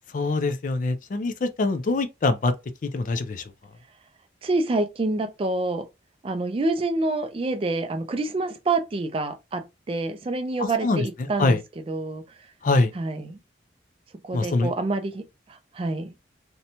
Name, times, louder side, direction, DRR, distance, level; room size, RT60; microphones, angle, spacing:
voice 1, 0.1-2.5 2.8-3.4 10.6-11.6 12.6-12.9 14.3-14.7, left 3 dB, 45° left, 0.4 m, -24 dB
voice 2, 4.4-5.9 6.2-12.2 12.9-13.4 14.2-16.1, right 2 dB, 30° right, 0.3 m, -27 dB
2.6 x 2.1 x 2.8 m
head